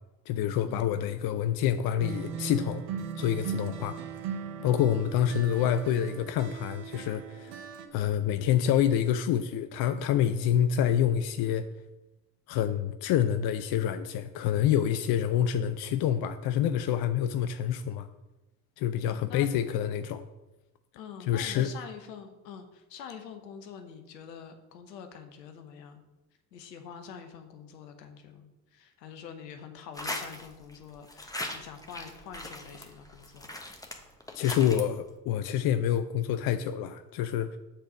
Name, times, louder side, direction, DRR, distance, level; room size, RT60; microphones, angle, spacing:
voice 1, 0.3-2.8 3.2-4.0 4.6-7.6 7.9-11.6 12.5-18.1 18.8-20.2 21.3-21.7 34.3-37.6, left 10 dB, 50° left, 10 dB, 0.5 m, -27 dB
sound 1, 2.0-7.9, right 7 dB, 65° right, 1.1 m, -38 dB
voice 2, 19.1-19.5 20.9-26.0 26.5-33.6, left 7 dB, 80° left, 7 dB, 1.0 m, -46 dB
sound 2, 29.9-30.8 31.1-34.8, left 1 dB, 5° left, 1.2 m, -39 dB
7.8 x 4.2 x 6.2 m, 1.0 s
hypercardioid pair, 55°, 49 cm